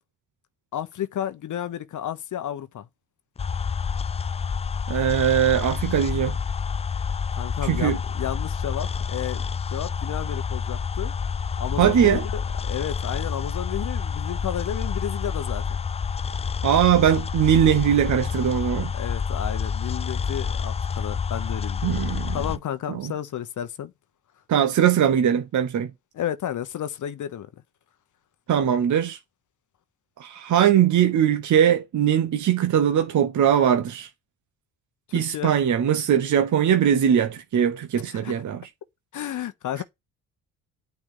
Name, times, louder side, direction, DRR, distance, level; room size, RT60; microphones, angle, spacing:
voice 1, 0.7-2.9 7.3-9.4 9.7-11.1 11.6-15.8 18.9-23.9 26.1-27.5 35.1-35.5 38.1-38.3 39.1-39.8, left 10 dB, 50° left, 0.9 m, -32 dB
sound 1, 3.4-22.6, left 6 dB, 20° left, 0.3 m, -28 dB
voice 2, 4.9-6.4 7.6-8.0 11.8-12.3 16.6-18.9 21.8-22.4 22.9-23.1 24.5-25.9 28.5-29.2 30.2-34.1 35.1-38.7, right 9 dB, 50° right, 1.0 m, -21 dB
8.9 x 3.4 x 3.8 m
supercardioid pair, 60°, 38 cm